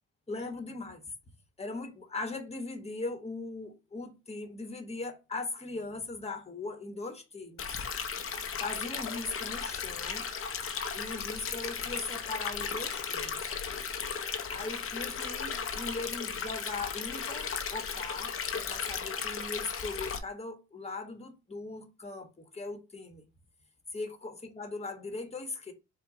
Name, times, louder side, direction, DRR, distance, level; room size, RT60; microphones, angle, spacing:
voice 1, 0.3-1.0 1.6-7.7 8.6-10.3 10.9-13.3 14.5-23.2 23.9-25.7, left 3 dB, 20° left, 1.3 m, -39 dB
Stream, 7.6-20.2, left 6 dB, 45° left, 0.8 m, -36 dB
4.5 x 2.4 x 4.8 m
cardioid pair, 90°, 30 cm